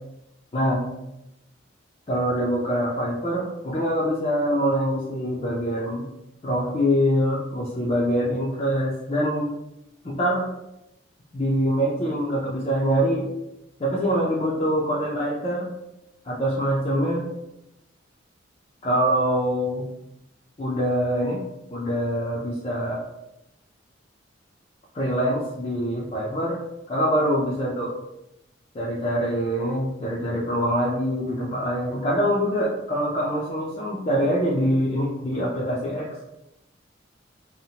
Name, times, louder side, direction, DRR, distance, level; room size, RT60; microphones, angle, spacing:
voice 1, 0.5-0.9 2.1-6.1 6.4-9.5 10.0-10.5 11.3-13.3 13.8-15.7 16.2-17.2 18.8-19.9 20.6-21.4 21.7-23.0 24.9-26.6 26.9-27.9 28.7-36.1, equal, 30° left, -6 dB, 0.4 m, -24 dB
2.8 x 2.1 x 2.7 m, 0.89 s
head